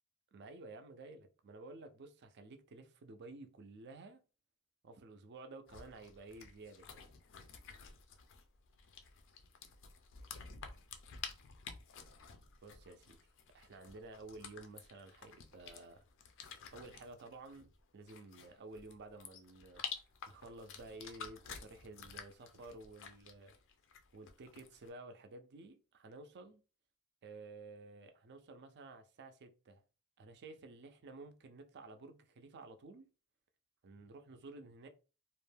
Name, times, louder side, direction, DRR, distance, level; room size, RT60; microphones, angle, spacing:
voice 1, 0.3-4.2 4.8-7.2 12.6-13.2 13.5-16.0 16.7-19.8 20.3-23.5 24.1-26.6 27.2-29.8 30.2-33.1 33.8-34.9, right 3 dB, 50° right, 0.4 m, -53 dB
sound 1, 5.7-24.9, left 6 dB, 60° left, 0.4 m, -51 dB
2.5 x 2.1 x 3.3 m
head